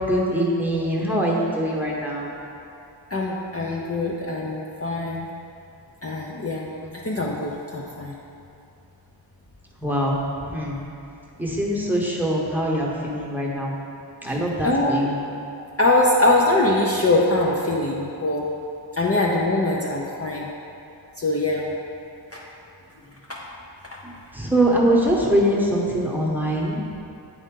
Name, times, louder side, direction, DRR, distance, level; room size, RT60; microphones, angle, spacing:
voice 1, 0.1-2.3 6.8-6.9 9.8-10.2 10.4-10.8 11.4-13.7 14.2-15.2 24.0-26.8, right 1 dB, 5° right, -3 dB, 1.0 m, -23 dB
voice 2, 3.1-5.3 6.0-6.7 6.9-8.1 14.3-14.4 14.6-15.1 15.8-18.5 19.0-20.5 21.2-21.7 22.3-22.4 23.3-23.4 23.8-24.0, left 2 dB, 35° left, -3 dB, 0.6 m, -23 dB
8.7 x 3.9 x 3.7 m, 2.7 s
wide cardioid pair, 55°, 44 cm